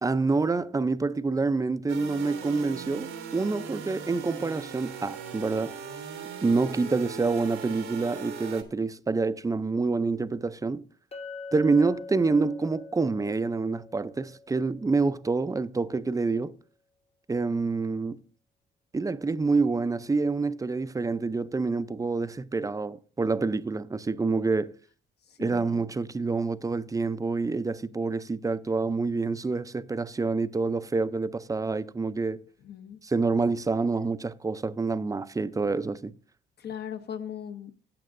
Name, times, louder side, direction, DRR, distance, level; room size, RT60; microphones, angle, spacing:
voice 1, 0.0-5.7 6.4-10.8 11.5-16.5 17.3-18.2 18.9-24.7 25.4-32.4 33.0-36.1, right 4 dB, 15° right, 0.5 m, -27 dB
sound 1, 1.9-8.6, right 7 dB, 85° right, 1.4 m, -39 dB
Chink clink, 11.1-15.4, left 3 dB, 30° left, 1.0 m, -44 dB
voice 2, 25.4-25.8 32.6-33.0 36.6-37.8, left 8 dB, 55° left, 0.9 m, -39 dB
15.5 x 8.5 x 2.6 m
cardioid pair, 90°, 20 cm